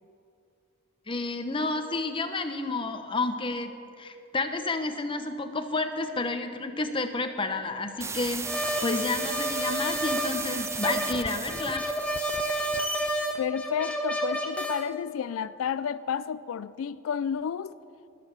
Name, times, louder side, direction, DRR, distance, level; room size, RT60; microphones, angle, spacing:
voice 1, 1.1-11.9, left 3 dB, 25° left, 7 dB, 0.8 m, -30 dB
sound 1, 8.0-13.1, right 4 dB, 15° right, 0.4 m, -36 dB
sound 2, 8.4-14.8, equal, 5° left, 1.3 m, -30 dB
voice 2, 13.4-17.8, left 7 dB, 75° left, 15 dB, 0.3 m, -31 dB
19.5 x 6.8 x 7.3 m, 2.5 s
head